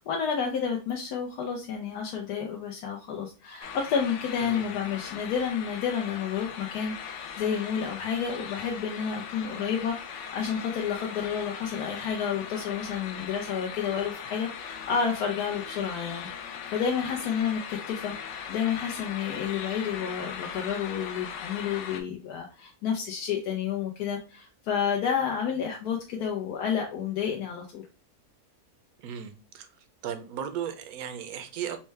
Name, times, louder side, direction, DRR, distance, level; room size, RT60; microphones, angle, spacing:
voice 1, 0.0-18.1 18.5-27.8, left 7 dB, 80° left, 1.1 m, -30 dB
sound 1, 3.6-22.0, left 7 dB, 65° left, 0.7 m, -39 dB
voice 2, 4.4-4.8 29.0-29.7 30.0-31.8, right 8 dB, 75° right, 1.0 m, -36 dB
4.4 x 2.1 x 3.2 m
omnidirectional pair, 1.6 m